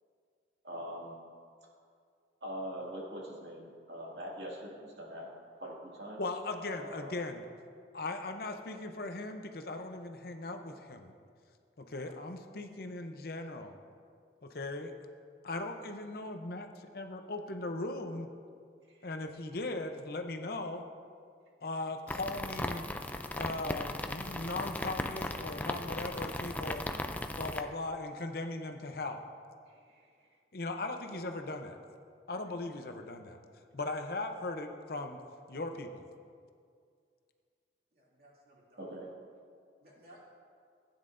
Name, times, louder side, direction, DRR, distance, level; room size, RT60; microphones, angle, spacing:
voice 1, 0.6-1.2 2.4-5.3 5.6-6.2 6.7-7.1 19.0-19.1 29.7-30.0 38.8-39.1, equal, 70° right, -4 dB, 2.2 m, -43 dB
voice 2, 6.2-7.4 7.9-11.1 11.8-13.8 14.4-14.9 15.4-18.3 19.0-20.8 21.6-22.8 23.3-26.8 27.4-29.2 30.5-31.8 32.3-33.4 33.7-35.2 35.5-36.0, left 2 dB, 55° left, 5 dB, 0.7 m, -38 dB
sound 1, 22.1-27.6, left 1 dB, 10° left, 0.3 m, -37 dB
voice 3, 37.9-39.0 39.8-40.2, right 1 dB, 55° right, -5 dB, 2.6 m, -59 dB
16.0 x 9.7 x 2.6 m, 2.2 s
head